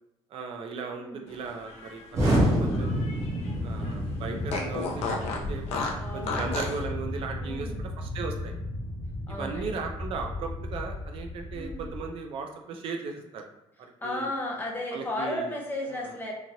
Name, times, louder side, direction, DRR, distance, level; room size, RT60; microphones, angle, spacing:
voice 1, 0.3-2.2 2.6-3.1 3.6-5.8 6.1-8.5 9.4-13.5 14.0-14.3 14.9-15.5, right 5 dB, 55° right, 3 dB, 0.4 m, -36 dB
voice 2, 0.9-1.2 6.0-6.6 7.4-7.8 9.3-9.8 11.5-11.8 14.0-16.3, left 1 dB, 15° left, -1 dB, 0.5 m, -34 dB
Fart, 1.5-3.5 3.8-3.9 4.5-6.8, left 4 dB, 70° left, 0.5 m, -34 dB
Explosion, 2.1-12.1, equal, 25° right, 0.7 m, -31 dB
2.9 x 2.6 x 2.7 m, 0.86 s
cardioid pair, 180°, 12 cm